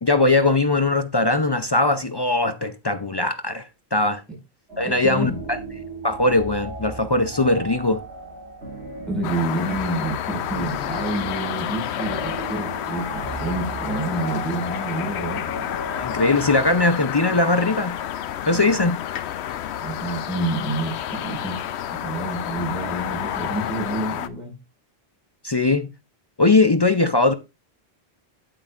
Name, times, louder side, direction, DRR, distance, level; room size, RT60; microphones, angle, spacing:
voice 1, 0.0-4.2 4.8-5.6 6.0-8.0 16.0-18.0 18.5-19.0 25.4-25.9 26.4-27.3, left 2 dB, 35° left, 0.4 m, -20 dB
sound 1, 4.7-16.5, right 3 dB, 85° right, 2.9 m, -37 dB
voice 2, 4.8-5.4 9.1-15.4 18.5-19.0 19.8-21.6 22.0-24.5, right 2 dB, ahead, 5.2 m, -28 dB
sound 2, 9.2-24.3, left 10 dB, 85° left, 0.9 m, -30 dB
9.5 x 8.7 x 2.4 m
omnidirectional pair, 1.1 m